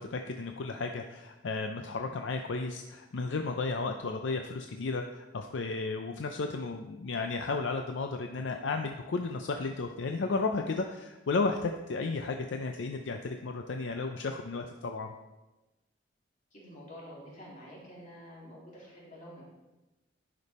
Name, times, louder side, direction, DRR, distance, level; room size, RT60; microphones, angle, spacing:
voice 1, 0.0-15.1, left 3 dB, 70° left, 5 dB, 0.5 m, -33 dB
voice 2, 16.5-19.4, equal, 40° left, -5 dB, 2.8 m, -48 dB
10.5 x 5.2 x 4.2 m, 1.1 s
head